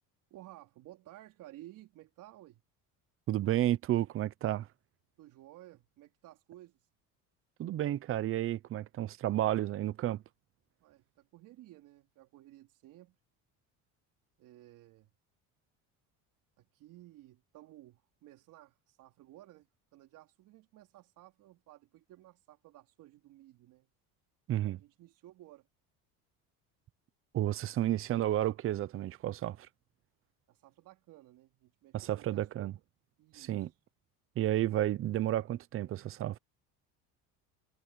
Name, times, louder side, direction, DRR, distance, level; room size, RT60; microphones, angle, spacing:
voice 1, 0.3-2.6 5.2-6.9 10.8-13.2 14.4-15.1 16.6-23.9 24.6-25.7 30.5-32.7 33.2-33.8, right 15 dB, 65° right, 4.3 m, -55 dB
voice 2, 3.3-4.7 7.6-10.2 24.5-24.8 27.3-29.7 31.9-32.7 33.3-33.7 34.4-36.4, right 13 dB, 40° right, 0.7 m, -31 dB
cardioid pair, 150°, 34 cm